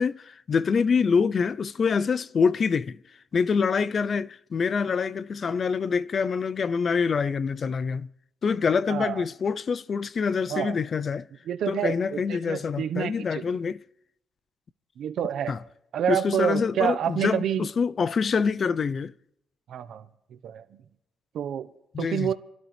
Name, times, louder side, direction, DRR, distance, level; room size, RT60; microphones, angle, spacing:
voice 1, 0.0-3.0 3.3-8.1 8.4-11.3 11.7-13.8 15.5-15.6 16.1-19.1 21.9-22.3, left 5 dB, 45° left, 0.6 m, -25 dB
voice 2, 8.9-9.2 10.5-10.7 11.5-13.6 15.0-15.5 15.9-17.7 19.7-20.0 20.4-20.6 21.3-21.7 22.0-22.3, right 9 dB, 70° right, 1.1 m, -28 dB
27.5 x 12.5 x 3.4 m
cardioid pair, 90°, 0 cm